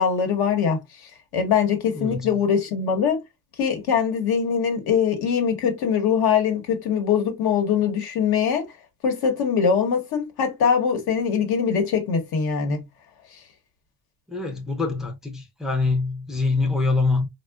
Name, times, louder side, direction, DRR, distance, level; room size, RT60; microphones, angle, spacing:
voice 1, 0.0-3.2 3.6-8.7 9.0-12.8, left 7 dB, 75° left, 1.1 m, -22 dB
voice 2, 1.9-2.4 14.3-17.3, left 3 dB, ahead, 0.5 m, -24 dB
3.5 x 2.3 x 2.2 m
cardioid pair, 130°, 38 cm